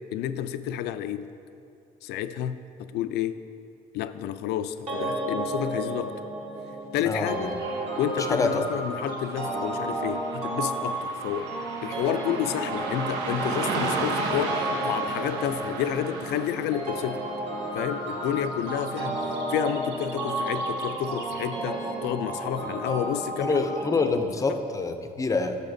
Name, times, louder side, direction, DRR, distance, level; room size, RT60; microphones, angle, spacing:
voice 1, 0.1-1.3 2.0-2.6 2.9-3.4 3.9-6.1 6.9-7.5 8.0-11.5 11.8-17.3 17.7-19.2 19.5-23.7 24.0-24.2, left 10 dB, 75° left, 12 dB, 0.4 m, -30 dB
sound 1, 4.9-24.1, right 1 dB, 40° right, 1.2 m, -32 dB
voice 2, 7.0-7.6 8.3-8.6 23.4-25.6, left 3 dB, 20° left, 7 dB, 0.5 m, -26 dB
Car passing by / Traffic noise roadway noise, 7.6-21.9, right 3 dB, 85° right, 1.0 m, -36 dB
13.5 x 6.6 x 2.6 m, 2.6 s
cardioid pair, 110°, 17 cm